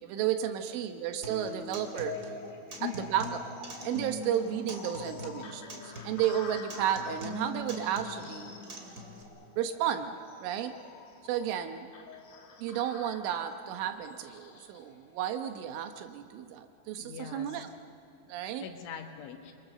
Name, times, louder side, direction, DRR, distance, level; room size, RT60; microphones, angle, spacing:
voice 1, 0.0-2.3 2.8-3.4 3.7-8.6 9.6-10.8 11.2-11.9 12.6-17.7 18.3-18.7, right 10 dB, 75° right, 8 dB, 3.4 m, -33 dB
Acoustic guitar, 1.2-9.2, left 1 dB, 35° right, 1.6 m, -43 dB
sound 1, 1.8-16.0, left 5 dB, 50° left, 2.2 m, -48 dB
voice 2, 17.0-17.6 18.6-19.5, left 8 dB, 75° left, 5 dB, 3.8 m, -41 dB
29.0 x 23.0 x 6.8 m, 2.8 s
omnidirectional pair, 5.9 m